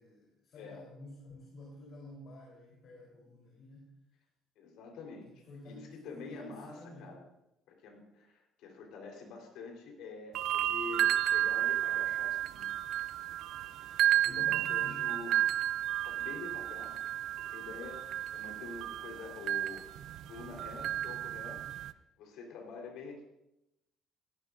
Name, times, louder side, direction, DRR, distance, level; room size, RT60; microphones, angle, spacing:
voice 1, 0.0-4.0 5.3-7.2 14.2-15.1, left 2 dB, 45° left, -2 dB, 3.9 m, -50 dB
voice 2, 4.6-7.2 7.7-12.7 14.1-15.4 16.0-17.0 17.5-19.9 20.3-21.6 22.2-23.2, left 4 dB, 75° left, 1 dB, 4.1 m, -46 dB
sound 1, 10.3-21.9, right 12 dB, 65° right, 0.5 m, -32 dB
17.0 x 16.0 x 2.6 m, 0.87 s
cardioid pair, 145°, 0 cm